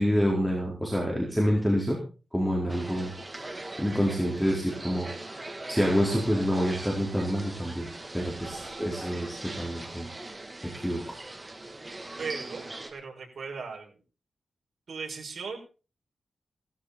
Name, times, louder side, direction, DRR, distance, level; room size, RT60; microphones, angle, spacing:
voice 1, 0.0-2.0 2.3-3.1 3.8-7.9 8.1-10.1 10.8-11.2, equal, 5° left, -2 dB, 4.2 m, -27 dB
sound 1, 2.7-12.9, right 2 dB, 20° right, 2.8 m, -41 dB
voice 2, 12.2-12.6 12.9-14.0 14.9-15.6, right 5 dB, 65° right, 0 dB, 5.7 m, -37 dB
18.0 x 13.0 x 4.2 m, 0.36 s
wide cardioid pair, 135°, 0 cm